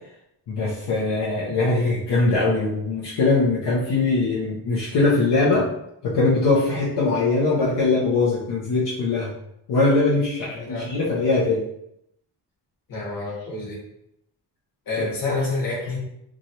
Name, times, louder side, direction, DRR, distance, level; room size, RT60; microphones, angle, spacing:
voice 1, 0.5-5.6 6.0-9.3 9.7-11.6, left 3 dB, 75° left, -6 dB, 0.8 m, -21 dB
voice 2, 10.5-10.9 12.9-13.8 14.9-16.0, left 3 dB, 55° left, -4 dB, 1.2 m, -28 dB
2.9 x 2.4 x 2.7 m, 0.79 s
wide cardioid pair, 130°, 42 cm